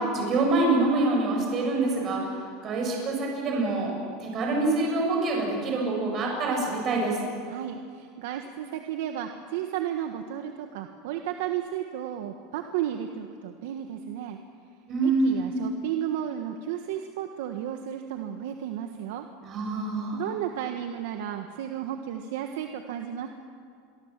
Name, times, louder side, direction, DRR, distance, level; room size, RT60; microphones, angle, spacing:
voice 1, 0.0-2.2 2.6-3.9 4.2-7.2 14.9-15.7 19.4-20.3, right 2 dB, 30° right, 0 dB, 7.7 m, -26 dB
voice 2, 7.5-14.4 15.0-19.2 20.1-23.3, right 10 dB, 75° right, 5 dB, 1.6 m, -33 dB
28.5 x 23.0 x 7.6 m, 2.3 s
supercardioid pair, 155°, 0 cm